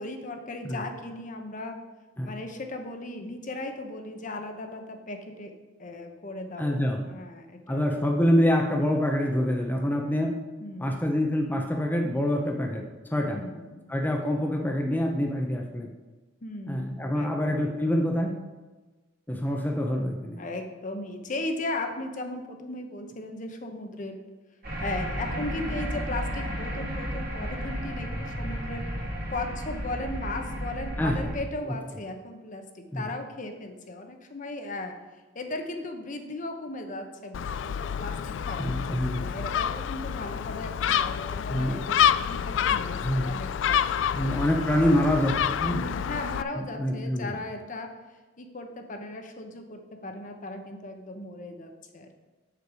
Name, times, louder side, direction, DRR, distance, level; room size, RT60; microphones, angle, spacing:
voice 1, 0.0-1.8 2.2-5.5 5.8-7.9 10.6-11.2 13.3-13.9 16.4-17.8 20.4-24.2 24.8-28.8 29.3-34.9 35.3-44.3 45.7-47.9 48.4-52.1, left 2 dB, 45° left, 5 dB, 0.8 m, -37 dB
voice 2, 6.6-7.0 7.7-10.3 10.8-13.4 13.9-15.9 16.7-18.3 19.3-20.4 31.0-31.1 32.9-33.0 38.6-39.2 41.5-41.8 43.0-43.3 44.1-45.3 45.6-45.8 46.5-47.3, equal, 10° left, 1 dB, 0.6 m, -26 dB
sound 1, 24.6-31.4, equal, 50° right, 2.7 m, -33 dB
Gull seagull, 37.3-46.4, left 8 dB, 70° left, 0.3 m, -28 dB
6.8 x 6.6 x 4.8 m, 1.2 s
head